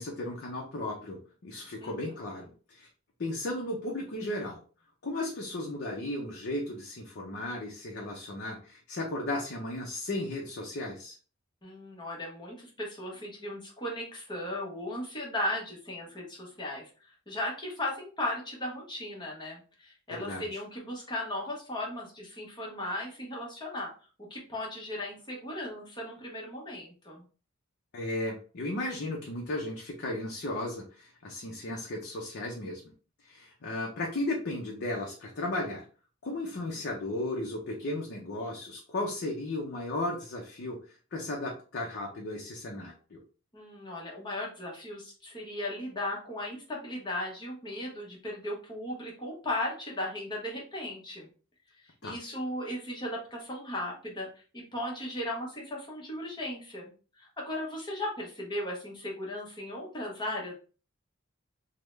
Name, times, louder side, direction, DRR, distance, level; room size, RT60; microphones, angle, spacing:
voice 1, 0.0-2.9 3.2-4.6 5.0-11.1 20.2-20.5 27.9-32.8 33.3-35.8 36.2-40.8 41.1-43.2 52.0-52.2, left 1 dB, 50° left, -1 dB, 0.6 m, -35 dB
voice 2, 1.8-2.1 11.6-23.9 24.3-27.2 43.5-51.3 51.8-54.3 54.5-56.8 57.2-60.5, left 1 dB, 20° left, -2 dB, 0.9 m, -36 dB
3.5 x 2.1 x 3.1 m, 0.38 s
head